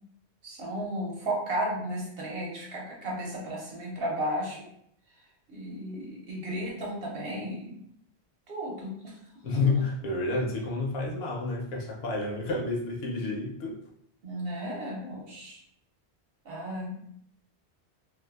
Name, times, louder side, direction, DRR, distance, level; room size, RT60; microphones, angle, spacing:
voice 1, 0.4-4.6 5.5-7.8 8.5-9.2 14.2-15.6 16.4-17.1, equal, 60° right, -3 dB, 0.9 m, -34 dB
voice 2, 9.4-13.8, left 3 dB, 70° left, -1 dB, 0.8 m, -29 dB
2.5 x 2.3 x 2.3 m, 0.71 s
omnidirectional pair, 1.2 m